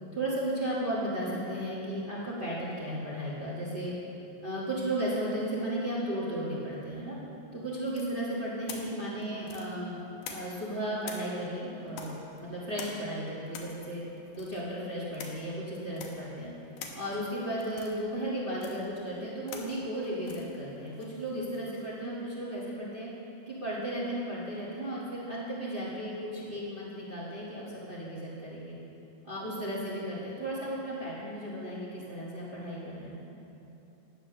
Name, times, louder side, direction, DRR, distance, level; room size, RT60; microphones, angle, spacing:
voice 1, 0.1-3.9 4.4-7.2 7.5-10.0 10.3-14.0 14.3-16.5 16.9-23.1 23.5-28.8 29.2-33.2, right 1 dB, 60° right, -6 dB, 0.5 m, -35 dB
sound 1, 7.9-10.7 11.0-22.0, left 5 dB, 75° left, 2.4 m, -47 dB
10.0 x 8.4 x 6.3 m, 2.9 s
omnidirectional pair, 3.9 m